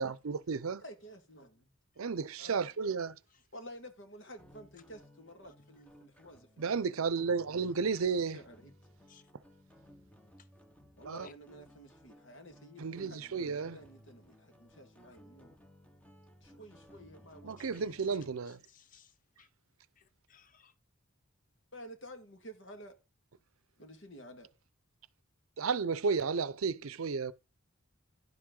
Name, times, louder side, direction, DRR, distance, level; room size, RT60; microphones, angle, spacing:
voice 1, 0.0-0.8 2.0-3.2 6.6-8.4 11.1-11.3 12.8-13.8 17.4-18.6 25.6-27.3, right 5 dB, 80° right, 0.6 m, -33 dB
voice 2, 0.8-1.7 2.4-2.7 3.5-6.9 7.8-8.7 11.0-15.6 16.4-18.3 21.7-22.9 23.8-24.5, equal, 60° left, 1.8 m, -52 dB
sound 1, 4.4-18.5, equal, 5° left, 1.0 m, -59 dB
voice 3, 18.7-19.1 19.4-19.5 20.0-20.7, left 6 dB, 40° left, 0.7 m, -59 dB
11.0 x 7.6 x 3.8 m
head